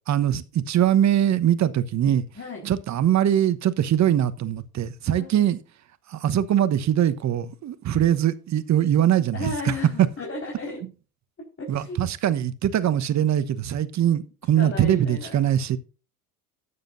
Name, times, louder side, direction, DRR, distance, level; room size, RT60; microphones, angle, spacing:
voice 1, 0.1-2.2 2.6-5.6 6.1-10.1 11.7-14.2 14.5-15.8, right 10 dB, 40° right, 1.1 m, -22 dB
voice 2, 5.1-5.4 7.9-8.0 9.3-10.8 11.6-12.0 14.6-15.4, left 2 dB, 30° left, 4.7 m, -34 dB
13.0 x 9.7 x 2.6 m
hypercardioid pair, 75°, 45 cm